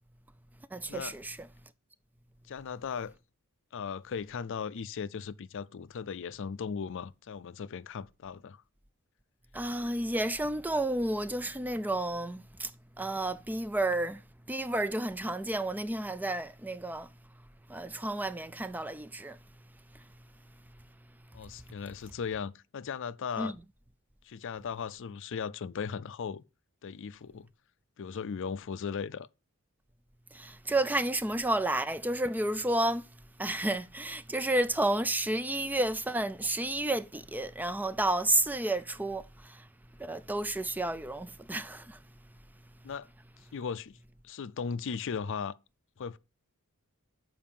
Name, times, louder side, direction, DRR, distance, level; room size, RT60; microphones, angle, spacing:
voice 1, 0.7-1.5 9.5-12.7 13.0-14.2 14.5-17.1 17.7-19.4 19.9-20.0 23.4-23.6 30.3-33.1 33.4-39.7 40.0-42.0, right 1 dB, 10° right, 0.3 m, -31 dB
voice 2, 2.5-3.1 3.7-8.6 21.3-23.5 24.2-26.4 26.8-27.5 28.0-29.3 42.8-43.1 43.5-44.0 44.2-45.5 46.0-46.2, left 6 dB, 60° left, 0.4 m, -37 dB
7.4 x 4.8 x 7.1 m
head